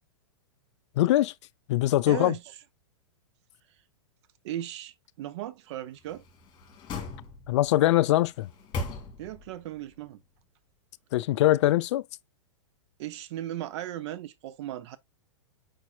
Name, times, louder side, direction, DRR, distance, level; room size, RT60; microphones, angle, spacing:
voice 1, 1.0-1.3 1.7-2.4 7.5-8.5 11.1-12.0, left 15 dB, 60° left, 0.4 m, -22 dB
voice 2, 2.1-2.4 4.4-6.2 9.2-10.2 13.0-15.0, right 12 dB, 60° right, 0.6 m, -36 dB
sound 1, 6.0-7.7 8.3-9.6 9.9-10.0, left 3 dB, 30° left, 1.9 m, -38 dB
5.1 x 4.2 x 2.3 m
hypercardioid pair, 120°, 17 cm